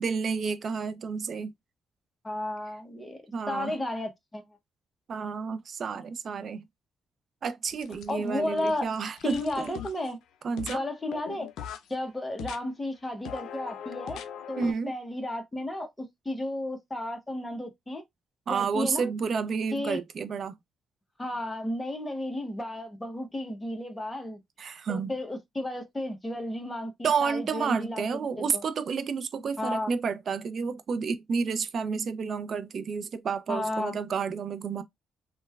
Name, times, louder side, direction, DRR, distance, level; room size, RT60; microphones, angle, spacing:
voice 1, 0.0-1.5 3.3-3.8 5.1-6.6 7.4-9.7 10.4-10.8 14.6-14.9 18.5-20.6 24.6-25.1 27.0-34.8, right 5 dB, 50° right, 0.4 m, -30 dB
voice 2, 2.2-4.4 8.1-8.9 9.2-10.2 10.7-11.5 11.9-14.2 14.5-18.0 18.5-19.1 19.7-20.0 21.2-24.4 24.9-28.0 28.4-28.6 29.6-29.9 33.5-34.0, left 1 dB, 15° left, 0.8 m, -33 dB
sound 1, 7.7-8.3 8.6-10.1 10.6-10.8 11.1-11.9 12.4-12.6 13.3-14.7, left 9 dB, 85° left, 0.3 m, -40 dB
3.0 x 2.2 x 2.2 m
cardioid pair, 90°, 0 cm